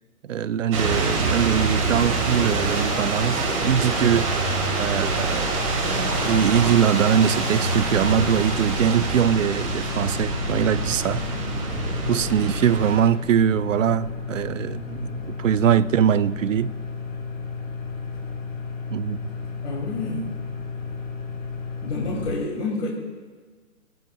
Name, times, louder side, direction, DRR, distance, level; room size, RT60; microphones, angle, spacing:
voice 1, 0.2-4.3 4.8-5.5 5.8-11.2 12.1-16.7 18.9-19.3, right 9 dB, 65° right, 0.5 m, -22 dB
sound 1, 0.7-13.0, right 3 dB, 25° right, 1.7 m, -25 dB
sound 2, 2.4-15.4, left 1 dB, 5° left, 2.6 m, -40 dB
sound 3, 5.5-22.3, left 4 dB, 75° left, 4.4 m, -33 dB
voice 2, 19.6-20.3 21.8-22.9, left 3 dB, 55° left, 2.5 m, -28 dB
27.0 x 9.2 x 2.3 m
hypercardioid pair, 165°, 43 cm